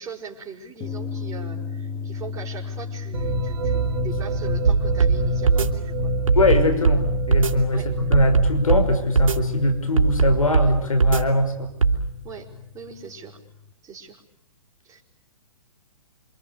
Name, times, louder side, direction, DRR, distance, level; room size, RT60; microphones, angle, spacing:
voice 1, 0.0-6.1 7.7-7.9 12.2-12.5 12.7-13.4 13.8-14.2 14.8-15.0, right 5 dB, 20° right, 1 dB, 5.7 m, -40 dB
sound 1, 0.8-13.7, left 5 dB, 25° left, 2.8 m, -37 dB
sound 2, 3.1-12.8, right 1 dB, 60° right, 3.9 m, -28 dB
sound 3, 4.7-5.2 5.5-5.7 6.3-7.0 7.3-7.5 8.1-8.8 9.2-9.4 10.0-10.7 11.0-11.2 11.8-12.0, right 4 dB, 75° right, 3.4 m, -18 dB
voice 2, 6.3-11.7, left 1 dB, 80° left, 8 dB, 5.7 m, -22 dB
28.0 x 27.0 x 6.8 m, 0.79 s
figure-of-eight pair, 125°, 17 cm